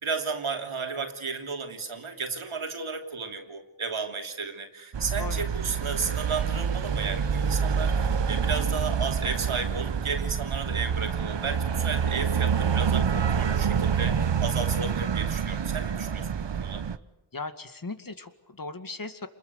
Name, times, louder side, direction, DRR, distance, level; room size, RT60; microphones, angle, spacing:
voice 1, 0.0-16.8, right 4 dB, 75° right, 4 dB, 3.0 m, -33 dB
sound 1, 4.9-17.0, right 7 dB, 60° right, 1.1 m, -27 dB
voice 2, 17.3-19.3, left 3 dB, 40° left, 9 dB, 2.3 m, -37 dB
28.5 x 21.5 x 8.2 m, 0.97 s
wide cardioid pair, 60°, 49 cm